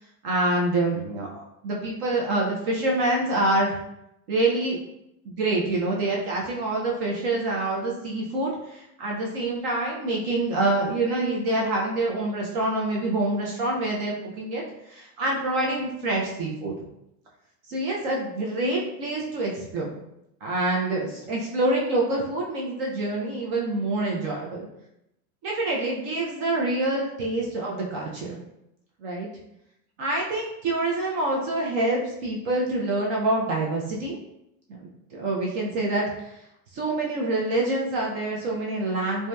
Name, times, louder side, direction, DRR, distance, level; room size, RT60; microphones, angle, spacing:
voice 1, 0.2-3.8 4.3-4.8 5.2-16.7 17.7-20.0 20.4-24.7 25.4-28.4 29.0-29.3 30.0-34.2 35.1-36.3 36.7-39.3, right 2 dB, 40° right, -2 dB, 0.4 m, -26 dB
2.7 x 2.2 x 2.2 m, 0.82 s
supercardioid pair, 140°, 49 cm